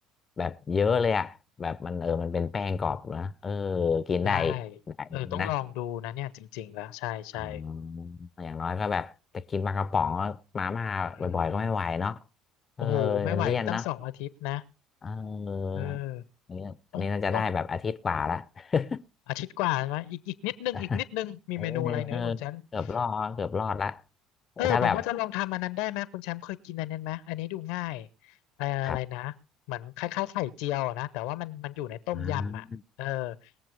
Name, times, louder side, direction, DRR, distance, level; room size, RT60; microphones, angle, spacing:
voice 1, 0.4-4.6 4.9-5.5 7.4-12.2 12.8-13.9 15.0-16.0 16.5-19.0 20.7-21.0 21.6-22.4 22.7-24.0 24.6-25.0 28.8-29.0 32.1-32.8, left 5 dB, 35° left, 0.7 m, -30 dB
voice 2, 4.2-4.7 5.1-7.6 11.2-11.4 12.8-14.6 15.7-16.3 16.9-17.1 17.3-17.5 19.3-22.6 24.6-29.3 29.7-32.7 33.0-33.5, left 15 dB, 65° left, 0.8 m, -32 dB
21.0 x 7.5 x 5.1 m
figure-of-eight pair, 55°, 0 cm